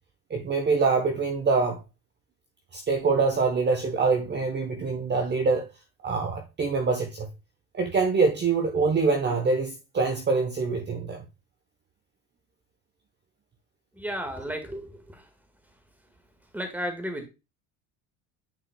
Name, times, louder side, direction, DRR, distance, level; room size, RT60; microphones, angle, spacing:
voice 1, 0.3-1.8 2.7-5.6 6.0-7.3 7.7-11.2, right 4 dB, 25° right, 1.0 m, -25 dB
voice 2, 13.9-15.3 16.5-17.3, equal, 5° right, 1.6 m, -33 dB
9.1 x 4.9 x 2.2 m
supercardioid pair, 105°, 39 cm